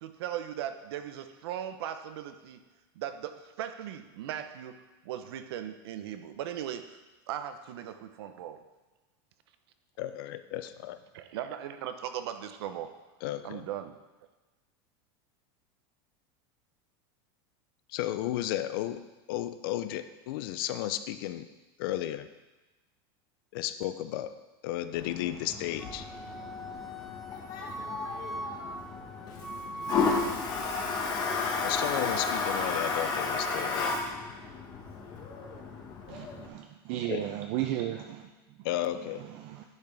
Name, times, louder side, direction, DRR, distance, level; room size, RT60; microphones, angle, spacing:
voice 1, 0.0-2.6 3.0-6.8 7.3-8.6 11.1-12.9 13.4-14.0, right 10 dB, 80° right, 9 dB, 0.7 m, -38 dB
voice 2, 10.0-11.0 13.2-13.6 17.9-21.5 21.8-22.3 23.5-24.4 24.6-26.1 31.6-33.9 37.1-37.3 38.6-39.2, left 13 dB, 60° left, 12 dB, 0.5 m, -33 dB
Toilet flush, 24.9-36.5, left 4 dB, 30° left, 1.1 m, -33 dB
Wind instrument woodwind instrument, 25.8-32.6, right 1 dB, ahead, 0.6 m, -41 dB
voice 3, 36.1-38.2 39.4-39.6, right 12 dB, 45° right, 4 dB, 0.5 m, -34 dB
10.5 x 5.9 x 3.3 m, 1.2 s
supercardioid pair, 155°, 13 cm